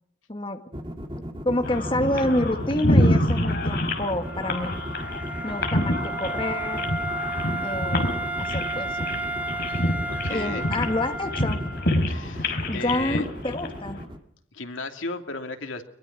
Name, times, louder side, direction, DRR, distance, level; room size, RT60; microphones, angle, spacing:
voice 1, 0.3-0.6 1.4-4.8 5.4-6.9 7.6-9.0 10.3-11.6 12.7-14.0, left 1 dB, 25° left, 6 dB, 1.5 m, -28 dB
sound 1, 0.7-14.2, equal, 25° right, 2.1 m, -37 dB
sound 2, 1.6-14.0, left 1 dB, 55° left, 4.6 m, -27 dB
Wind instrument woodwind instrument, 4.2-12.0, right 2 dB, 10° right, 2.3 m, -33 dB
voice 2, 9.7-10.7 12.1-13.3 14.5-15.8, left 3 dB, 90° left, 5 dB, 2.8 m, -35 dB
23.0 x 22.0 x 6.1 m, 0.69 s
head